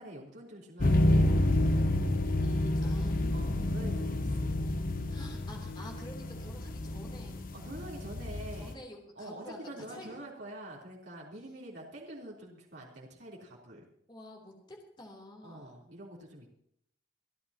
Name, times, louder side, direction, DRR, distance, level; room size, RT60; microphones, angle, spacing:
voice 1, 0.0-2.1 3.3-4.6 7.5-8.8 9.2-13.8 15.4-16.5, right 1 dB, 65° right, -4 dB, 3.6 m, -46 dB
sound 1, 0.8-8.7, left 1 dB, 50° left, 0.8 m, -29 dB
voice 2, 2.4-3.6 5.1-7.3 8.6-10.2 14.1-15.7, left 1 dB, 25° left, 0 dB, 3.2 m, -48 dB
29.0 x 10.5 x 2.9 m, 0.71 s
head